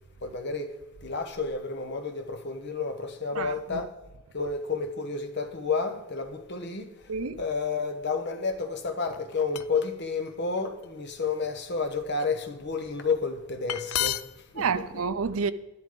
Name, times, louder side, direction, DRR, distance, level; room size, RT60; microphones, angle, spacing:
voice 1, 0.2-3.9 4.3-7.1 7.4-14.9, left 4 dB, 50° left, 1.1 m, -31 dB
voice 2, 3.3-3.8 7.1-7.4 14.6-15.5, right 5 dB, 75° right, 0.6 m, -29 dB
sound 1, 9.1-9.9 10.6-10.8 11.4-12.2 13.4-13.5 13.7-14.4, left 12 dB, 90° left, 0.5 m, -32 dB
11.0 x 11.0 x 3.9 m
head